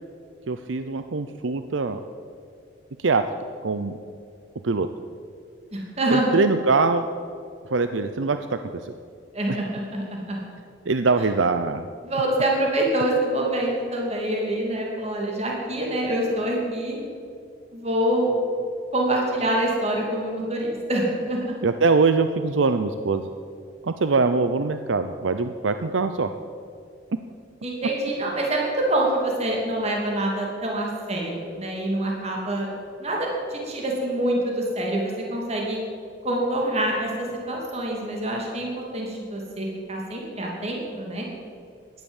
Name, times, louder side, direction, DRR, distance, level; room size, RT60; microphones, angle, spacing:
voice 1, 0.5-2.0 3.0-3.2 3.6-3.9 4.6-4.9 6.1-7.1 7.7-8.9 9.5-9.6 10.9-11.9 21.6-23.2 23.8-26.3, right 4 dB, 85° right, 9 dB, 0.7 m, -23 dB
voice 2, 5.7-6.3 9.3-10.4 12.0-17.0 17.7-18.4 18.9-21.4 27.6-32.7 33.0-35.8 36.2-41.3, right 1 dB, 35° right, -1 dB, 2.9 m, -26 dB
17.0 x 12.0 x 7.2 m, 2.5 s
head